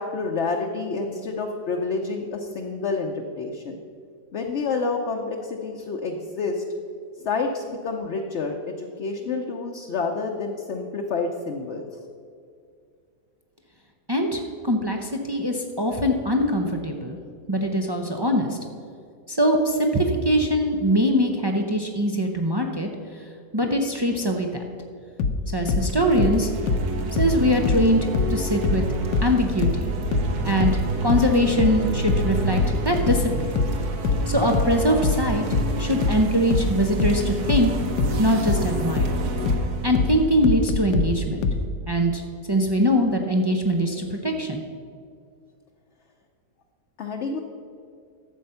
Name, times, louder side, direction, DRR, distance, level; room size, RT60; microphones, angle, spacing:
voice 1, 0.0-3.8 4.3-6.6 7.2-11.9 47.0-47.4, left 4 dB, 55° left, 1 dB, 0.9 m, -28 dB
voice 2, 14.1-17.2 17.5-18.6 19.3-22.9 23.5-24.6 25.5-26.5 27.2-28.0 28.3-28.8 29.2-29.9 30.4-33.6 34.3-35.4 35.8-37.7 38.2-39.2 39.8-41.5 41.9-42.2 42.5-44.6, equal, 40° right, 2 dB, 0.3 m, -22 dB
sound 1, 25.2-28.4 28.6-41.7, left 4 dB, 80° left, 1.4 m, -24 dB
sound 2, 25.8-41.2, right 2 dB, 70° right, 1.6 m, -30 dB
12.0 x 7.9 x 5.7 m, 2.3 s
omnidirectional pair, 1.8 m